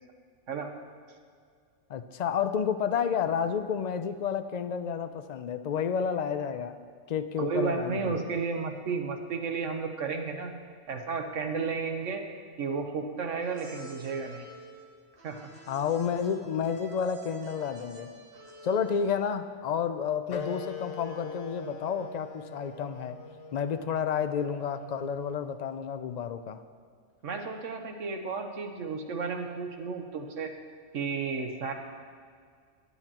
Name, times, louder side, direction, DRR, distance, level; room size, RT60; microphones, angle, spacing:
voice 1, 1.9-6.8 7.1-8.4 15.7-18.1 18.6-23.2 23.5-26.6, left 7 dB, 55° left, 10 dB, 0.4 m, -30 dB
voice 2, 7.4-10.6 10.9-12.3 12.6-14.4 15.2-15.5 27.2-30.5 30.9-31.7, right 5 dB, 75° right, 4 dB, 1.4 m, -33 dB
sound 1, 13.4-19.3, right 3 dB, 50° right, 1.4 m, -48 dB
Wind instrument woodwind instrument, 20.3-25.4, left 5 dB, 90° left, 1.2 m, -42 dB
18.5 x 9.8 x 3.0 m, 2.1 s
omnidirectional pair, 1.3 m